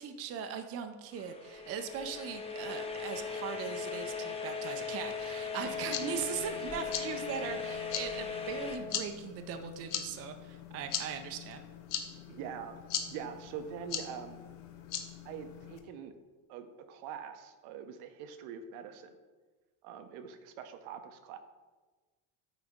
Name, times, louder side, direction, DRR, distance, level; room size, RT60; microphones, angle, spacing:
voice 1, 0.0-11.6, right 7 dB, 30° right, 6 dB, 0.4 m, -40 dB
sound 1, 1.1-8.8, left 5 dB, 10° left, 0.6 m, -38 dB
sound 2, 5.6-15.8, left 9 dB, 90° left, 0.9 m, -41 dB
voice 2, 12.3-14.4 15.2-16.1 16.5-19.2 19.8-21.4, right 7 dB, 70° right, 8 dB, 0.8 m, -44 dB
8.7 x 4.0 x 3.6 m, 1.3 s
cardioid pair, 130°, 49 cm